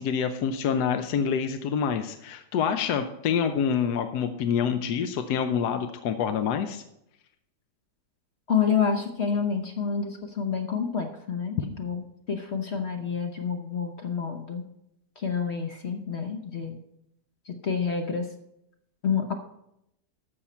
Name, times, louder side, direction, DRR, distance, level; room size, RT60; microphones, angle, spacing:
voice 1, 0.0-6.8 11.6-11.7, left 7 dB, 70° left, 8 dB, 1.1 m, -27 dB
voice 2, 8.5-14.6 15.2-16.8 17.5-18.3 19.0-19.3, left 6 dB, 50° left, 5 dB, 0.9 m, -28 dB
12.0 x 7.1 x 4.3 m, 0.81 s
omnidirectional pair, 1.9 m